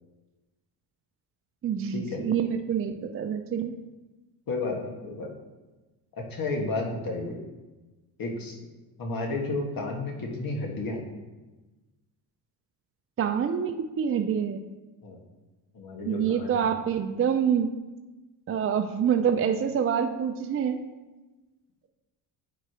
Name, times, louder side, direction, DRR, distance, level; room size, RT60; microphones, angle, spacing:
voice 1, 1.6-3.7 13.2-14.6 16.0-17.7 18.5-20.8, right 8 dB, 30° right, 6 dB, 0.5 m, -26 dB
voice 2, 4.5-5.3 6.2-7.4 8.2-8.6 9.0-11.0 15.0-15.2 15.7-16.7, left 2 dB, 50° left, 1 dB, 1.7 m, -32 dB
10.0 x 4.5 x 2.9 m, 1.2 s
supercardioid pair, 65°, 44 cm